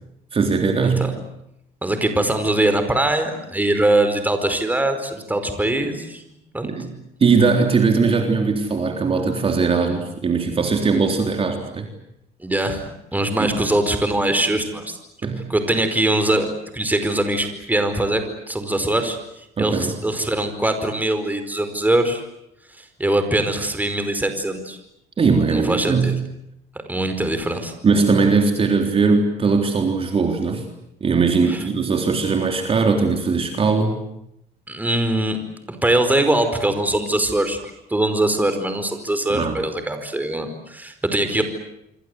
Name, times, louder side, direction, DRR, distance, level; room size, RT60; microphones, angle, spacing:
voice 1, 0.3-1.1 6.6-6.9 7.2-11.9 13.4-13.6 15.2-15.5 19.6-19.9 25.2-26.2 27.8-30.6 31.0-34.0 39.3-39.6, right 4 dB, 35° right, 4 dB, 3.7 m, -19 dB
voice 2, 1.8-6.2 6.5-6.7 12.4-15.0 15.5-16.5 16.7-19.2 19.6-22.2 22.8-24.8 25.5-26.1 26.9-27.7 31.5-31.6 34.7-35.4 35.7-41.4, right 1 dB, 10° right, 8 dB, 4.9 m, -22 dB
27.0 x 25.5 x 8.2 m, 0.81 s
cardioid pair, 110°, 17 cm